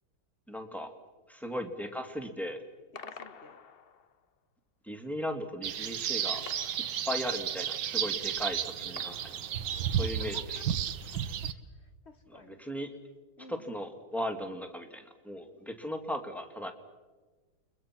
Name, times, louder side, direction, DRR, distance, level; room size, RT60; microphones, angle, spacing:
voice 1, 0.5-0.9 1.3-2.6 4.8-6.4 7.1-9.4 9.8-10.6 12.3-12.9 13.5-16.7, left 1 dB, ahead, 5 dB, 2.0 m, -37 dB
voice 2, 2.9-3.6 10.0-11.2 11.7-12.7 13.4-13.8, left 2 dB, 40° left, 8 dB, 1.3 m, -53 dB
sound 1, 3.0-4.3 6.5-7.6 9.0-10.1, left 6 dB, 55° left, 0.6 m, -49 dB
sound 2, 5.6-11.5, right 9 dB, 65° right, 1.5 m, -33 dB
30.0 x 22.5 x 6.0 m, 1.3 s
omnidirectional pair, 2.2 m